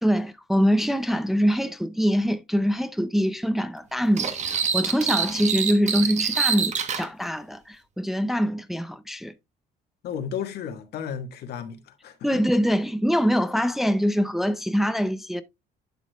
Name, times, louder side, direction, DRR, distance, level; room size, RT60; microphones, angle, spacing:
voice 1, 0.0-9.3 12.2-15.4, equal, ahead, 0.5 m, -24 dB
sound 1, 4.2-7.1, right 6 dB, 45° right, 1.2 m, -26 dB
voice 2, 10.0-12.2, left 8 dB, 70° left, 1.7 m, -33 dB
11.0 x 6.1 x 2.3 m
cardioid pair, 110°, 17 cm